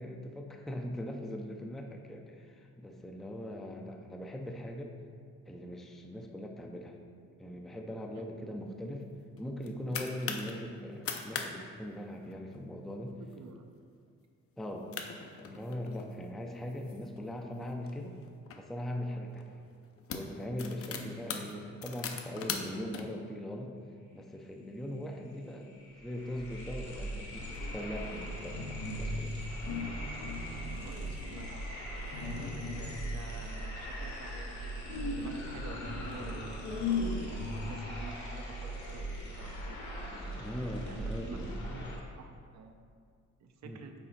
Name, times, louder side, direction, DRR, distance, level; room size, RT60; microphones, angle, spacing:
voice 1, 0.0-4.9 5.5-7.0 7.4-9.1 9.4-13.1 14.6-14.9 15.4-18.2 18.6-19.4 20.1-23.7 24.1-25.7 26.0-29.4 38.0-38.1 40.4-41.9 43.6-43.8, left 1 dB, ahead, 2 dB, 0.4 m, -40 dB
sound 1, 9.4-10.5 10.9-11.5 11.7-11.8 12.2-12.5 13.1-13.3 13.8-13.9 14.6-14.7 14.9-16.1 16.7-18.6 19.3-19.5 19.8-23.0, left 6 dB, 50° left, 0.6 m, -40 dB
voice 2, 13.4-13.7 20.9-21.1 30.8-39.1 39.4-39.8 40.8-41.4 41.7-41.8 42.1-42.7 43.4-43.9, right 5 dB, 65° right, 5 dB, 0.6 m, -49 dB
sound 2, 25.0-25.1 25.3-42.0, right 1 dB, 70° left, 1.4 m, -40 dB
sound 3, 27.2-29.3 29.6-31.5 32.1-33.2 34.9-37.9, left 4 dB, 85° left, 0.8 m, -38 dB
5.6 x 4.1 x 4.1 m, 2.2 s
cardioid pair, 90°, 30 cm